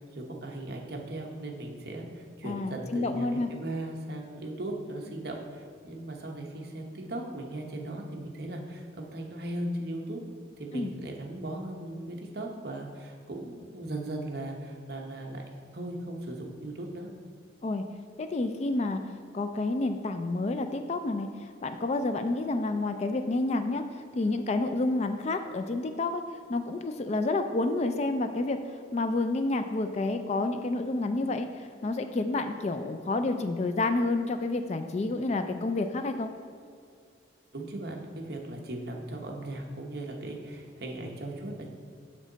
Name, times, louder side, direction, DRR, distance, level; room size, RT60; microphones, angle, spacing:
voice 1, 0.0-10.2 10.6-17.1 37.5-41.7, right 1 dB, 55° right, 1 dB, 0.9 m, -38 dB
voice 2, 2.4-3.5 10.7-10.9 17.6-17.8 18.2-19.0 19.3-26.2 26.5-28.6 28.9-36.3, left 2 dB, 35° left, 8 dB, 0.3 m, -29 dB
6.2 x 6.2 x 4.0 m, 2.2 s
head